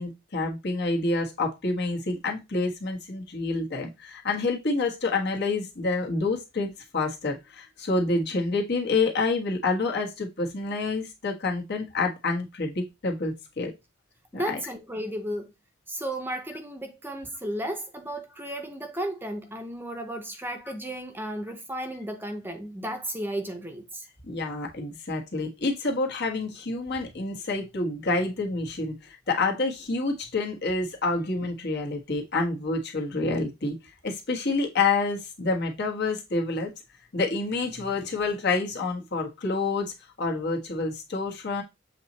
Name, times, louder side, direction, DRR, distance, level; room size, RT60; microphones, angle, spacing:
voice 1, 0.0-13.7 14.3-14.6 24.2-33.7 34.0-36.7 37.1-39.9 40.2-41.6, left 3 dB, 55° left, 1.5 m, -28 dB
voice 2, 14.3-15.5 15.9-24.0, right 1 dB, 10° right, 0.8 m, -34 dB
7.5 x 3.0 x 4.2 m
head